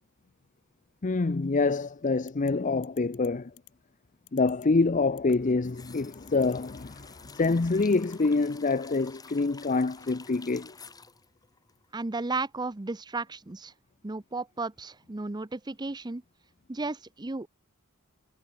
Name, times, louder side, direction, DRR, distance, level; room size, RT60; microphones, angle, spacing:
voice 1, 1.0-3.5 4.3-10.7, left 3 dB, 35° left, 0.6 m, -26 dB
sound 1, 2.3-2.5 2.8-3.3 3.6-3.7 4.3-4.7 5.2-5.4 6.1-6.6 7.3-7.5 7.8-8.2, left 15 dB, 80° left, 5.6 m, -52 dB
sound 2, 5.3-12.3 12.6-12.7, left 4 dB, 15° left, 2.0 m, -51 dB
voice 2, 11.9-13.7 14.0-16.2 16.7-17.5, right 3 dB, 20° right, 0.6 m, -34 dB
head